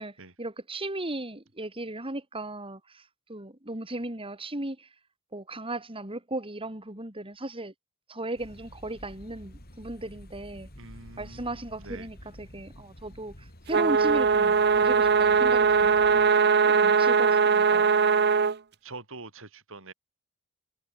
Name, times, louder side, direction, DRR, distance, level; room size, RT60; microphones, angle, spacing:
voice 1, 0.0-4.9 5.3-7.7 8.1-10.7 11.2-18.0, right 1 dB, 25° right, 4.6 m, -37 dB
sound 1, 8.4-16.3, equal, 45° left, 6.4 m, -49 dB
voice 2, 10.8-12.1 18.8-19.9, right 3 dB, 65° right, 6.4 m, -45 dB
sound 2, 13.7-18.5, right 5 dB, 50° right, 0.8 m, -21 dB
head